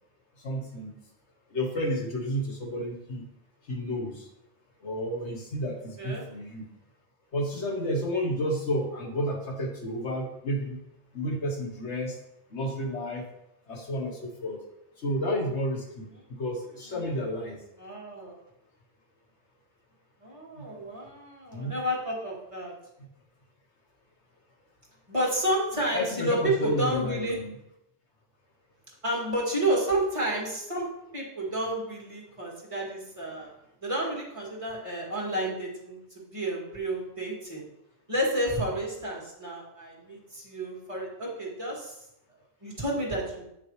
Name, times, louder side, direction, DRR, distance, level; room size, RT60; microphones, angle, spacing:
voice 1, 0.4-0.9 1.5-3.3 3.7-4.3 4.8-6.7 7.3-10.8 11.1-12.2 12.5-13.2 13.7-14.6 15.0-17.6 20.5-20.9 21.5-21.7 25.9-27.6, equal, 80° left, 1 dB, 1.5 m, -31 dB
voice 2, 17.8-18.4 20.2-22.7 25.1-27.4 29.0-30.9 31.1-33.5 33.8-36.0 36.3-37.7 38.1-42.0 42.6-43.4, right 1 dB, 30° right, -4 dB, 2.0 m, -30 dB
8.8 x 5.9 x 3.2 m, 0.83 s
omnidirectional pair, 1.2 m